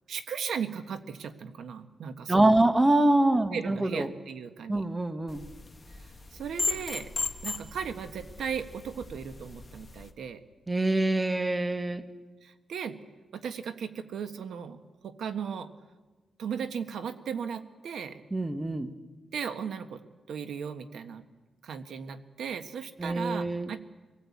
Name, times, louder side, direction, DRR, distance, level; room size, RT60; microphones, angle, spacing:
voice 1, 0.1-2.6 3.5-4.8 6.3-7.1 7.4-10.4 12.4-13.0 13.3-14.8 15.0-15.7 16.4-18.2 19.3-20.0 20.3-21.2 21.6-23.9, right 7 dB, 75° right, 8 dB, 1.4 m, -36 dB
voice 2, 2.3-4.1 4.7-5.4 10.7-12.0 18.3-18.9 23.0-23.7, right 1 dB, 15° right, 8 dB, 1.1 m, -25 dB
sound 1, 5.3-10.1, left 3 dB, 25° left, 1.4 m, -37 dB
25.5 x 18.0 x 8.5 m, 1.3 s
wide cardioid pair, 155°, 0 cm